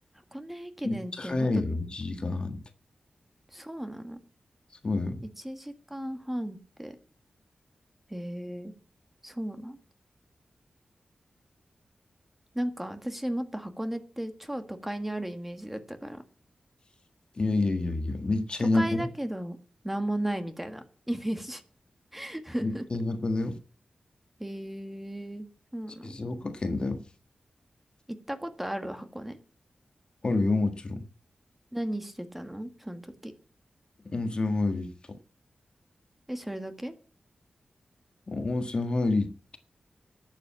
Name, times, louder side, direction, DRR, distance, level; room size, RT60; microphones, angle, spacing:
voice 1, 0.3-1.5 3.5-4.2 5.4-7.0 8.1-8.7 9.2-9.8 12.5-16.2 18.7-19.6 19.8-21.6 22.1-22.8 24.4-25.5 25.7-26.2 28.1-29.4 31.7-33.3 36.3-36.9, right 1 dB, 5° right, 7 dB, 1.6 m, -35 dB
voice 2, 0.8-2.6 4.8-5.3 17.4-19.0 22.6-23.6 26.0-27.0 30.2-31.1 34.0-35.2 38.3-39.6, left 2 dB, 40° left, 8 dB, 1.6 m, -28 dB
12.0 x 8.2 x 8.6 m, 0.40 s
wide cardioid pair, 115°, 2 cm